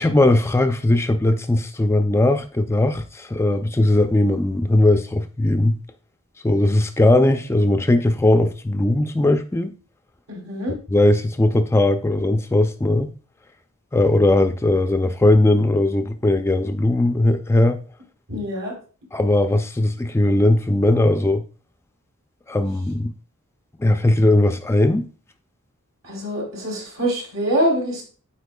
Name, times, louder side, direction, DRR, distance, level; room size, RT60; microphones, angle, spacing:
voice 1, 0.0-5.8 6.4-9.7 10.9-13.1 13.9-17.8 19.1-21.4 22.5-23.1 23.8-25.1, left 1 dB, 10° left, 0.4 m, -18 dB
voice 2, 10.3-10.7 18.3-18.7 26.0-28.0, right 1 dB, 75° right, 3.4 m, -24 dB
13.0 x 4.4 x 2.2 m
head